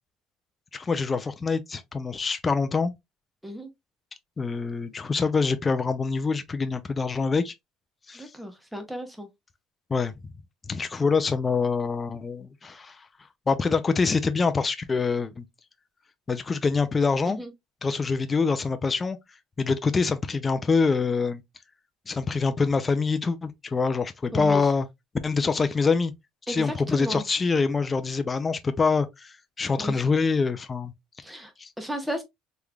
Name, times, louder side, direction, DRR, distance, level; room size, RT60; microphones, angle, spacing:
voice 1, 0.7-2.9 4.4-7.5 8.1-8.3 9.9-10.1 10.7-13.0 13.5-15.4 16.3-17.4 17.8-19.2 19.6-21.4 22.1-24.9 25.2-26.1 26.5-30.9 31.6-31.7, left 4 dB, 20° left, 0.4 m, -25 dB
voice 2, 8.1-9.3 17.2-17.5 24.3-24.7 26.5-27.2 29.7-30.0 31.2-31.5 31.8-32.2, equal, ahead, 0.8 m, -34 dB
3.6 x 3.1 x 2.2 m
cardioid pair, 155°, 0 cm